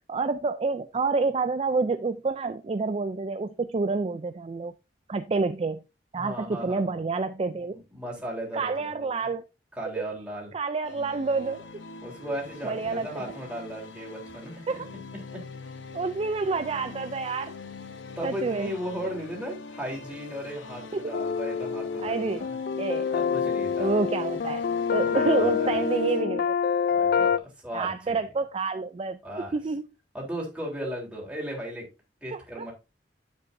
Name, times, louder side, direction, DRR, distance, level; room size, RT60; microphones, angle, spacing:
voice 1, 0.1-4.7 5.1-5.8 6.1-7.8 8.5-9.4 10.0-10.1 10.5-11.6 12.6-13.2 14.7-14.9 15.9-17.5 18.2-18.7 20.9-21.1 22.0-22.5 22.8-23.1 23.8-24.6 24.9-26.5 27.2-27.3 27.7-29.2 29.5-29.9 32.3-32.7, right 4 dB, 30° right, 0.4 m, -28 dB
voice 2, 6.2-7.0 7.7-9.3 9.7-10.5 12.0-14.8 15.1-15.5 18.1-22.6 23.1-23.9 25.0-25.8 26.9-28.2 29.2-29.6 30.1-31.9 32.2-32.7, equal, 5° right, 3.5 m, -36 dB
sound 1, 10.8-26.2, left 3 dB, 85° left, 0.9 m, -44 dB
sound 2, 21.1-27.4, left 6 dB, 50° left, 0.4 m, -26 dB
9.6 x 8.0 x 2.6 m
head